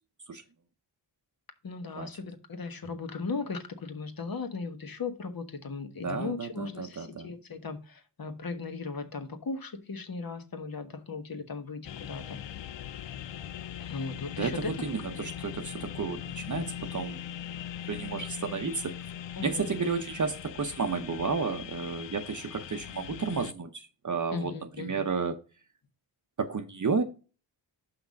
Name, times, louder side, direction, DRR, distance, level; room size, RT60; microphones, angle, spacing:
voice 1, 1.6-12.4 13.8-15.3 19.4-19.8 24.3-25.0, left 4 dB, 50° left, 1.3 m, -37 dB
voice 2, 6.0-7.3 14.4-17.2 17.9-19.0 19.4-25.4 26.4-27.0, right 5 dB, 40° right, 0.8 m, -32 dB
sound 1, 11.8-23.5, left 10 dB, 75° left, 0.6 m, -40 dB
5.7 x 5.6 x 5.1 m
cardioid pair, 65°, 45 cm